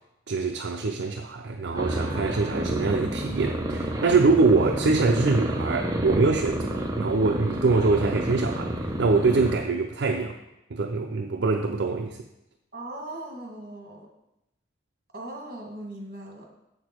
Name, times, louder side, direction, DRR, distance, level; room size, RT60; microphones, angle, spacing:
voice 1, 0.3-10.4 10.7-12.2, right 3 dB, 65° right, 3 dB, 0.5 m, -24 dB
sound 1, 1.7-8.1, equal, 35° left, 2.1 m, -45 dB
sound 2, 1.8-9.6, right 1 dB, 20° right, 0.7 m, -30 dB
voice 2, 12.7-14.1 15.1-16.5, right 1 dB, 50° right, 0 dB, 1.7 m, -39 dB
7.1 x 6.6 x 4.5 m, 0.88 s
head